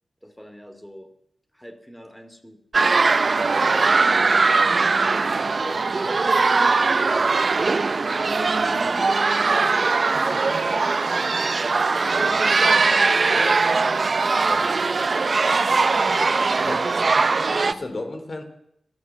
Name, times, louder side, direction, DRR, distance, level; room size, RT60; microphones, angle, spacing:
voice 1, 0.2-1.1 1.5-2.6 3.8-6.4 7.4-11.0 11.4-12.5 14.4-17.2, equal, 5° left, 2.9 m, -43 dB
sound 1, 2.7-17.7, right 4 dB, 45° right, 0.8 m, -20 dB
voice 2, 13.3-13.7 14.4-14.7 16.6-16.9 17.6-18.4, left 2 dB, 35° left, 3.4 m, -34 dB
29.5 x 12.0 x 7.4 m
wide cardioid pair, 125°, 0 cm